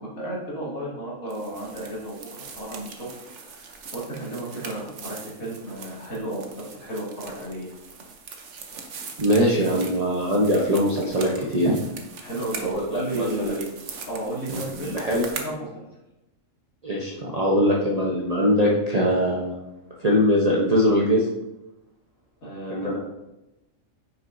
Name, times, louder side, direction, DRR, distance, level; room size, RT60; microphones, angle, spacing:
voice 1, 0.0-3.1 3.4-7.7 12.2-13.6 14.1-15.0 15.3-15.8 22.4-23.0, right 1 dB, 80° left, -6 dB, 2.7 m, -33 dB
sound 1, 1.3-15.5, right 5 dB, 60° right, 1.2 m, -41 dB
voice 2, 9.2-11.8 12.6-13.5 14.5-15.2 16.8-19.5 20.0-21.3 22.7-23.0, equal, 30° right, -5 dB, 1.0 m, -22 dB
9.2 x 6.1 x 2.7 m, 0.97 s
omnidirectional pair, 1.4 m